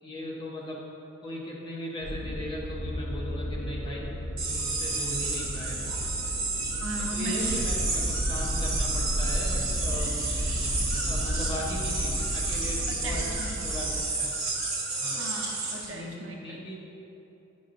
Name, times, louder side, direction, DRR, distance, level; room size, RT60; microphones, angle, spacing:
voice 1, 0.0-0.8 1.2-4.0 4.4-5.9 7.0-10.2 11.0-13.2 13.6-14.3 15.0-15.2 15.9-16.8, left 1 dB, 25° left, -4 dB, 0.9 m, -38 dB
sound 1, 2.0-14.0, equal, 70° left, 0.5 m, -36 dB
sound 2, 4.4-15.9, right 3 dB, 45° right, 1.3 m, -31 dB
voice 2, 6.8-7.7 12.9-13.7 15.2-16.6, right 1 dB, 70° right, 1 dB, 0.7 m, -37 dB
sound 3, 7.4-13.3, equal, 15° right, 0.3 m, -32 dB
8.7 x 5.4 x 2.6 m, 3.0 s
head